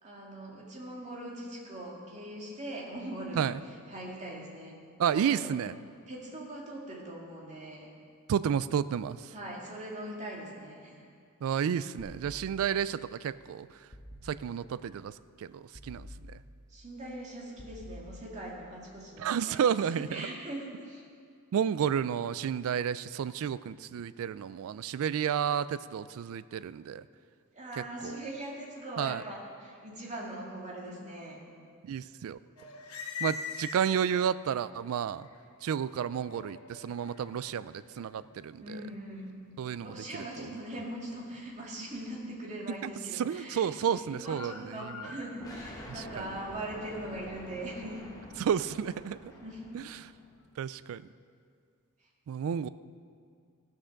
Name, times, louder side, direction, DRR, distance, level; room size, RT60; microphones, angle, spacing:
voice 1, 0.0-3.5 3.9-4.8 5.1-5.7 6.1-7.9 9.3-11.1 16.7-21.0 27.5-31.4 38.6-39.4 39.8-48.0 49.4-49.6, right 1 dB, 35° right, -3 dB, 2.2 m, -41 dB
voice 2, 5.0-5.7 8.3-9.3 11.4-13.7 14.2-16.4 19.2-20.3 21.5-27.0 28.0-28.2 29.0-29.2 31.8-32.4 33.2-35.3 35.6-38.8 39.6-40.5 43.2-45.0 46.2-46.4 48.4-49.2 49.7-50.1 50.6-51.0 52.3-52.7, right 8 dB, 65° right, 16 dB, 0.3 m, -31 dB
sound 1, 12.0-13.0 13.9-14.8 15.7-16.8 17.6-18.7, left 1 dB, 35° left, 1.3 m, -49 dB
sound 2, 32.6-34.3 34.9-50.7, left 5 dB, 70° left, 1.2 m, -48 dB
sound 3, 45.4-50.3, left 1 dB, 15° left, 1.4 m, -48 dB
15.5 x 6.2 x 6.4 m, 2.2 s
head